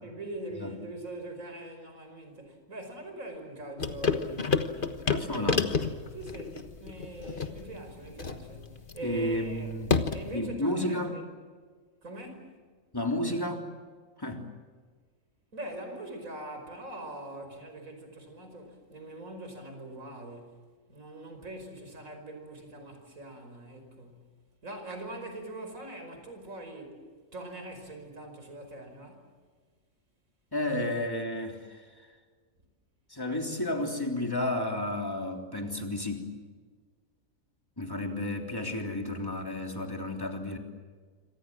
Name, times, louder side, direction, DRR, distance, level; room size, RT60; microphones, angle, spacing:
voice 1, 0.0-5.6 6.1-11.2 12.0-12.5 15.5-20.6 20.9-24.2 24.6-27.0 27.3-29.2, right 1 dB, 85° right, 5.6 m, -43 dB
sound 1, 3.8-10.4, left 5 dB, 40° left, 1.4 m, -31 dB
voice 2, 5.1-5.8 9.0-9.9 10.3-11.1 12.9-13.7 14.2-14.5 30.5-31.9 33.1-36.3 37.8-40.6, left 1 dB, 15° left, 3.5 m, -32 dB
27.0 x 26.0 x 7.7 m
omnidirectional pair, 1.4 m